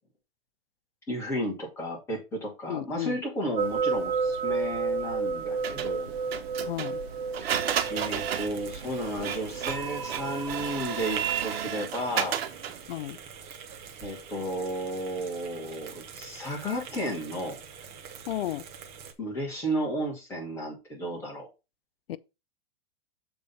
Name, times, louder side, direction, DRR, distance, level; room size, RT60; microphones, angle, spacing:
voice 1, 1.1-6.1 7.4-7.5 7.9-12.4 14.0-17.6 19.2-21.5, equal, 10° left, 2.3 m, -33 dB
voice 2, 2.7-3.2 6.7-7.0 12.9-13.2 18.3-18.6 22.1-22.2, left 13 dB, 75° left, 0.6 m, -33 dB
sound 1, 3.6-11.6, right 5 dB, 60° right, 2.2 m, -32 dB
Printer, 5.6-12.9, right 9 dB, 85° right, 1.3 m, -33 dB
sound 2, 7.6-19.1, right 6 dB, 20° right, 0.7 m, -45 dB
6.9 x 4.0 x 5.5 m
supercardioid pair, 175°, 30 cm